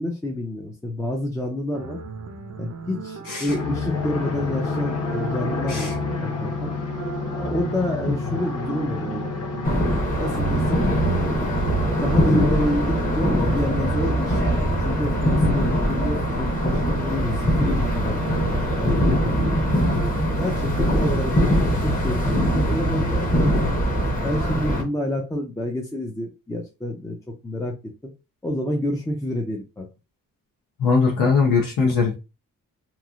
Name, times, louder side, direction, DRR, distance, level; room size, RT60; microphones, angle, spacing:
voice 1, 0.0-2.0 2.5-5.9 6.2-6.7 7.3-9.5 10.2-10.9 11.2-11.6 12.0-14.5 14.8-19.7 20.4-23.7 24.2-27.2 27.4-27.7 28.0-28.1 28.4-29.9, left 1 dB, 10° left, 0.5 m, -28 dB
sound 1, 1.7-20.1, right 5 dB, 50° right, 0.5 m, -37 dB
sound 2, 3.5-14.6, left 3 dB, 45° left, 1.1 m, -30 dB
sound 3, 9.6-24.8, equal, 25° left, 0.9 m, -22 dB
voice 2, 30.8-32.1, left 5 dB, 80° left, 0.8 m, -20 dB
3.0 x 2.4 x 2.4 m
cardioid pair, 110°, 33 cm